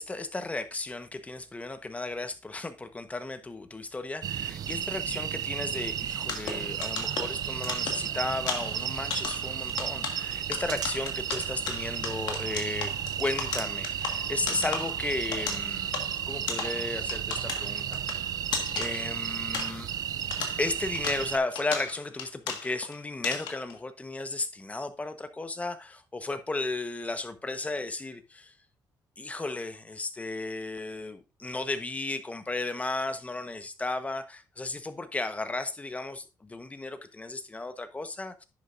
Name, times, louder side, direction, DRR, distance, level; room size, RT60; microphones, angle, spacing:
voice 1, 0.0-12.9 13.2-16.0 16.3-18.0 18.7-19.9 20.6-28.5 29.2-38.4, left 2 dB, 20° left, 1.1 m, -34 dB
sound 1, 4.2-21.4, right 10 dB, 60° right, 0.4 m, -33 dB
sound 2, 6.2-20.0 20.3-22.9 23.2-23.7, left 6 dB, 80° left, 1.6 m, -37 dB
10.5 x 6.6 x 2.5 m
cardioid pair, 90°, 7 cm